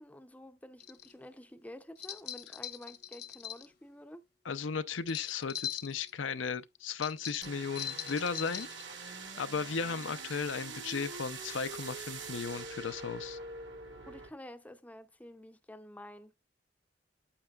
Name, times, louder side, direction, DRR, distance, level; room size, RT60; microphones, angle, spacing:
voice 1, 0.0-4.2 14.1-16.3, left 1 dB, 10° left, 0.6 m, -50 dB
sound 1, 0.8-1.1 2.0-3.7 5.0-6.1 7.0-8.8, left 10 dB, 60° left, 1.0 m, -41 dB
voice 2, 4.5-8.7 9.4-13.4, left 5 dB, 90° left, 0.6 m, -36 dB
sound 2, 7.4-14.3, right 4 dB, 70° right, 1.6 m, -44 dB
8.8 x 7.9 x 2.4 m
head